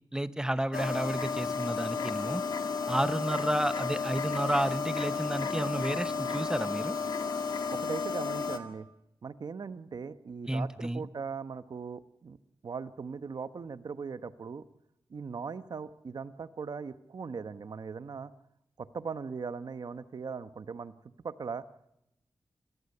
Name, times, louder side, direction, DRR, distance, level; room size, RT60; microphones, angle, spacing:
voice 1, 0.1-2.4 2.9-7.0 10.5-11.0, right 1 dB, 10° right, 12 dB, 0.8 m, -31 dB
sound 1, 0.7-8.6, left 5 dB, 65° left, 2.0 m, -33 dB
voice 2, 7.7-8.9 9.2-12.4 12.6-14.6 15.1-18.3 18.8-20.9 21.2-21.6, right 5 dB, 60° right, 11 dB, 0.9 m, -39 dB
26.5 x 18.5 x 6.7 m, 0.86 s
wide cardioid pair, 145°, 8 cm